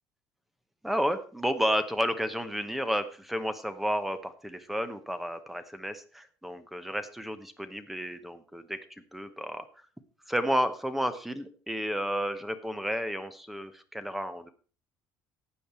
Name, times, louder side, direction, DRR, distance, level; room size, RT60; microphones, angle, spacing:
voice 1, 0.8-8.8 9.1-9.6 10.3-14.5, equal, 5° right, 12 dB, 0.9 m, -31 dB
12.5 x 8.6 x 4.4 m, 0.38 s
cardioid pair, 150°, 6 cm